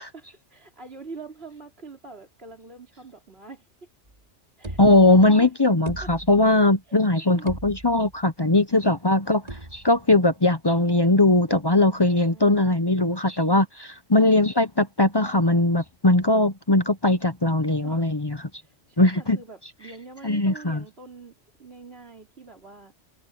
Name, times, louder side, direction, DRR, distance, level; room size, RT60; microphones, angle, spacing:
voice 1, 0.0-3.7 4.6-4.8 5.1-5.5 6.0-6.1 6.9-7.5 12.0-13.1 17.8-18.0 18.6-21.3 21.6-22.9, right 3 dB, 55° right, 4.1 m, -44 dB
sound 1, 4.1-4.2 4.6-5.4 5.9-6.7 7.1-7.2 7.5-8.2 9.5-10.1, right 2 dB, 35° right, 2.6 m, -38 dB
voice 2, 4.8-9.4 9.7-18.5 19.0-19.4 20.2-20.8, left 2 dB, 25° left, 0.8 m, -20 dB
omnidirectional pair, 1.2 m